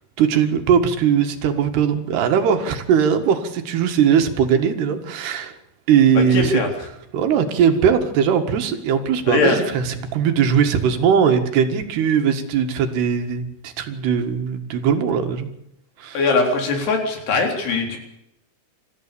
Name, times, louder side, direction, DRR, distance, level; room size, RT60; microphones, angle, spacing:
voice 1, 0.2-5.6 5.9-6.6 7.1-15.5 16.0-16.2, right 7 dB, 85° right, 6 dB, 3.9 m, -19 dB
voice 2, 6.1-6.7 9.3-9.6 16.1-18.0, left 3 dB, 85° left, 3 dB, 6.0 m, -20 dB
28.5 x 15.0 x 7.0 m, 0.81 s
omnidirectional pair, 4.6 m